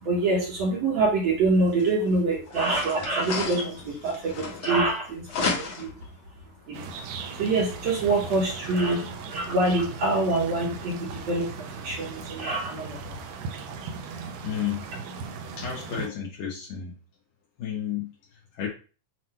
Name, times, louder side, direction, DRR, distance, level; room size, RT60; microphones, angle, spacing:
voice 1, 0.0-5.9 6.7-6.9 7.3-13.2, right 2 dB, 60° right, -3 dB, 2.1 m, -26 dB
sound 1, 1.8-1.9 2.5-5.0 5.3-6.0, left 4 dB, 55° left, 2.3 m, -32 dB
sound 2, 6.7-16.1, right 5 dB, 80° right, 2.3 m, -38 dB
voice 2, 14.4-14.9 15.6-16.9 17.6-18.7, left 9 dB, 75° left, -3 dB, 2.8 m, -32 dB
7.8 x 3.0 x 4.3 m, 0.35 s
omnidirectional pair, 4.0 m